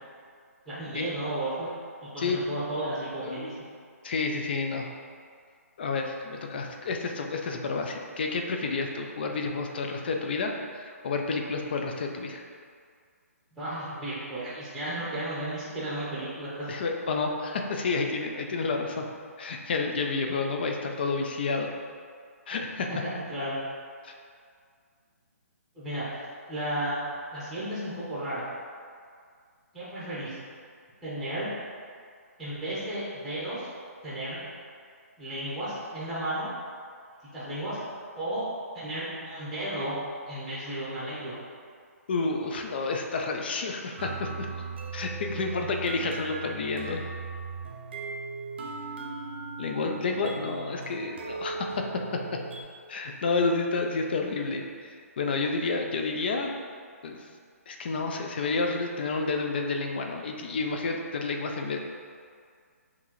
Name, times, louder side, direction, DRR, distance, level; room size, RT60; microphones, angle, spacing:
voice 1, 0.7-1.7 2.0-3.6 13.6-16.8 22.9-23.6 25.7-26.1 26.5-27.0 27.3-28.4 29.7-30.4 31.0-31.5 32.4-33.7 34.0-34.4 35.2-36.5 37.2-38.5 38.7-40.0 40.3-41.3, right 1 dB, ahead, -10 dB, 0.8 m, -33 dB
voice 2, 4.0-4.9 5.8-12.4 16.7-19.0 19.4-21.7 22.5-22.9 24.0-24.1 42.1-44.7 44.9-47.0 49.6-51.8 52.9-56.5 57.0-57.2 57.7-61.8, left 3 dB, 40° left, 2 dB, 0.4 m, -30 dB
sound 1, 44.0-52.6, right 4 dB, 45° right, 0.5 m, -38 dB
5.9 x 2.7 x 3.0 m, 2.1 s
hypercardioid pair, 165°, 8 cm